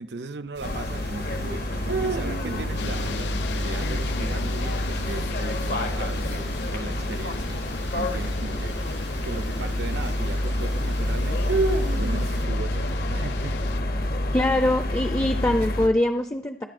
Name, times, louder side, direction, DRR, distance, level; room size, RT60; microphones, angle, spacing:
voice 1, 0.0-7.5 7.9-13.6, right 3 dB, 70° right, 0.6 m, -38 dB
sound 1, 0.5-12.4, right 2 dB, 90° right, 1.1 m, -34 dB
sound 2, 0.6-15.9, left 1 dB, 55° left, 0.8 m, -28 dB
sound 3, 2.8-13.8, left 6 dB, 70° left, 0.4 m, -40 dB
voice 2, 14.3-16.6, left 1 dB, 15° left, 0.5 m, -23 dB
22.0 x 11.0 x 2.5 m
head